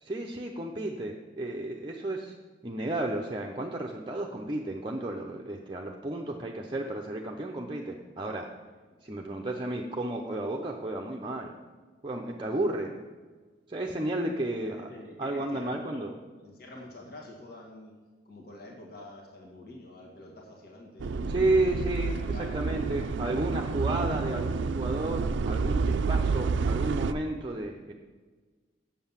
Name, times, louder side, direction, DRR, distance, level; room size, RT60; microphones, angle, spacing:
voice 1, 0.0-2.3 2.6-8.5 9.0-11.5 12.0-12.9 13.7-14.9 15.2-16.1 21.3-27.9, right 2 dB, 25° right, 1 dB, 0.6 m, -32 dB
voice 2, 14.6-16.1 16.4-17.9 18.3-21.4 21.9-22.8 23.2-23.6, left 2 dB, 55° left, -1 dB, 1.7 m, -47 dB
sound 1, 21.0-27.1, right 4 dB, 75° right, 0.4 m, -29 dB
7.8 x 7.3 x 7.1 m, 1.4 s
head